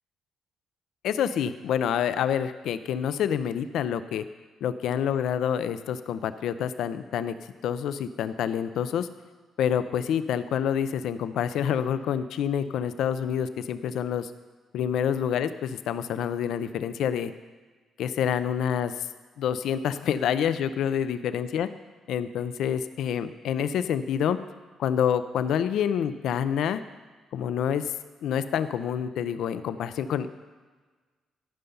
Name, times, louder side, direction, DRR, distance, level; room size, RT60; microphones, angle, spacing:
voice 1, 1.0-4.2 4.6-7.4 7.6-9.1 9.6-14.3 14.7-17.3 18.0-18.9 19.4-21.7 22.1-24.4 24.8-26.8 27.3-27.9 28.2-30.3, left 8 dB, 80° left, 12 dB, 0.5 m, -27 dB
13.5 x 5.7 x 5.5 m, 1.4 s
cardioid pair, 90°, 0 cm